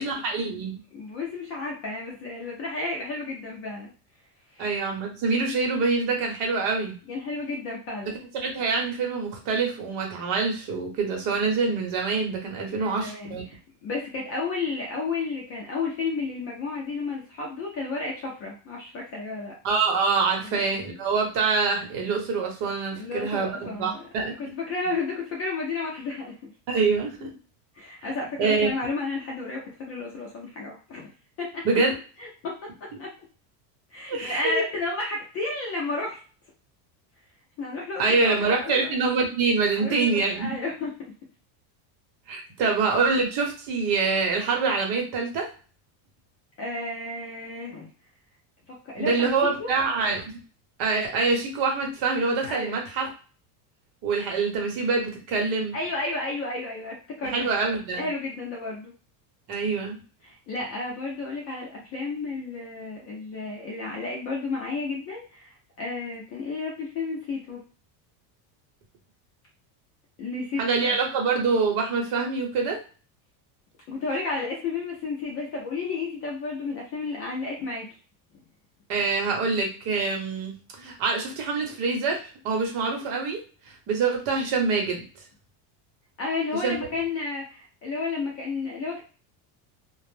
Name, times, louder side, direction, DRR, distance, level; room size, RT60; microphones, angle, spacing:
voice 1, 0.0-0.8 4.6-7.0 8.4-13.4 19.6-24.3 26.7-27.3 28.0-28.1 28.4-28.7 31.6-31.9 34.1-34.6 38.0-40.6 42.3-45.5 49.0-50.4 50.8-53.1 54.0-55.7 57.2-58.1 59.5-60.0 70.6-72.8 78.9-83.4 83.6-85.0 86.5-86.8, right 4 dB, 50° right, 2 dB, 0.9 m, -25 dB
voice 2, 0.9-3.9 4.5-4.6 7.1-8.2 12.6-19.5 20.4-20.6 22.9-24.1 24.4-26.5 27.2-27.3 27.8-31.1 31.4-31.7 32.2-33.1 33.9-36.2 37.6-39.0 39.7-40.9 46.6-47.9 48.7-49.7 52.5-52.8 55.7-57.5 58.0-58.9 60.2-67.6 70.2-71.0 73.9-77.9 86.2-89.0, left 3 dB, 30° left, -2 dB, 0.4 m, -32 dB
2.1 x 2.0 x 3.1 m, 0.37 s
cardioid pair, 155°, 50 cm